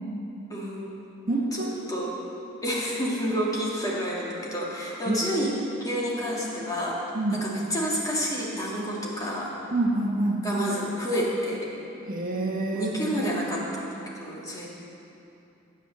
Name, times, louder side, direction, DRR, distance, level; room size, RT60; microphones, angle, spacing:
voice 1, 0.5-1.0 1.9-2.1 2.6-5.5 5.8-7.0 7.3-9.5 10.4-11.7 12.7-13.9 14.2-14.7, equal, 15° left, -5 dB, 2.4 m, -29 dB
voice 2, 1.3-1.8 5.0-5.2 7.1-7.4 9.7-10.4 12.1-13.1, right 2 dB, 45° right, -2 dB, 1.5 m, -27 dB
14.0 x 8.3 x 6.8 m, 2.8 s
head